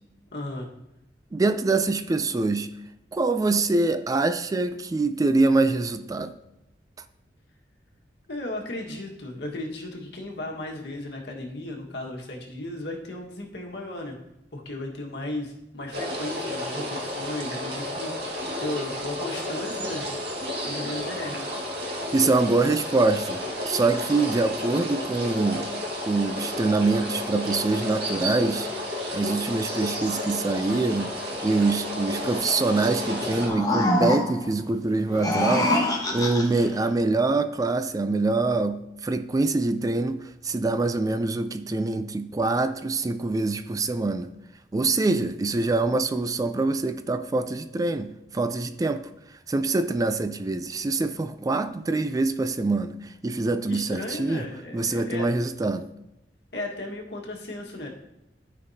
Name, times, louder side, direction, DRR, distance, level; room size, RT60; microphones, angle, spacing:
voice 1, 0.3-0.7 8.3-14.2 14.5-20.1 20.6-21.4 53.7-55.3 56.5-57.9, left 1 dB, 70° left, 1.6 m, -35 dB
voice 2, 1.3-2.7 3.1-6.3 22.1-25.7 26.1-28.7 29.1-35.8 36.1-44.3 44.7-49.0 49.5-54.5 54.7-55.9, right 3 dB, 20° right, 0.3 m, -24 dB
sound 1, 15.9-33.5, left 1 dB, 65° right, 2.0 m, -32 dB
sound 2, 33.2-34.5 35.1-36.7, left 1 dB, 20° left, 1.2 m, -25 dB
13.0 x 5.2 x 2.8 m
head